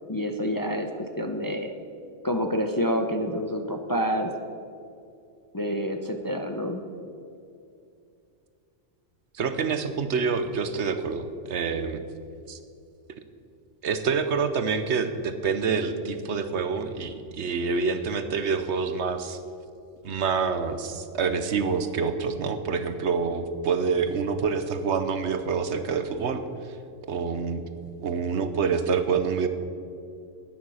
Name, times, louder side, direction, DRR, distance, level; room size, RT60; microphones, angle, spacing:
voice 1, 0.1-1.7 2.2-4.3 5.5-6.8, equal, 20° left, 5 dB, 0.6 m, -28 dB
voice 2, 9.3-12.0 12.5-12.6 13.8-19.4 20.0-26.4 27.1-27.6 28.0-29.5, right 5 dB, 70° right, 9 dB, 1.1 m, -27 dB
11.0 x 9.5 x 6.3 m, 2.6 s
omnidirectional pair, 1.2 m